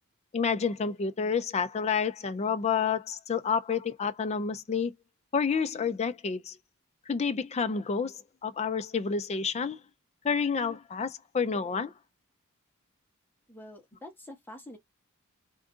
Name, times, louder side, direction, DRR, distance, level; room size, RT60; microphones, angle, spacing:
voice 1, 0.3-4.9 5.3-6.6 7.1-9.8 10.2-11.9, left 6 dB, 30° left, 0.4 m, -29 dB
voice 2, 13.5-14.8, left 1 dB, 10° left, 1.1 m, -46 dB
3.5 x 2.6 x 3.6 m
head